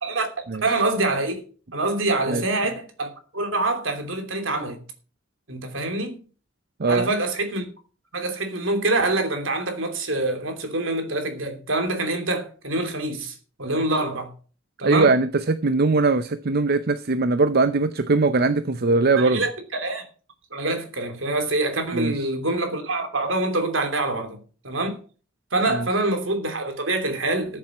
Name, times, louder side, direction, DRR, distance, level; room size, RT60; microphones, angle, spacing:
voice 1, 0.0-1.4 1.7-3.1 3.3-4.8 5.5-6.2 6.9-7.7 8.1-14.3 14.8-15.1 19.2-20.0 20.5-24.4 24.6-25.0 25.5-27.6, right 2 dB, 70° right, 3.0 m, -25 dB
voice 2, 14.8-19.4 21.9-22.3 25.7-25.9, right 3 dB, 50° right, 0.7 m, -21 dB
14.0 x 7.5 x 6.0 m
head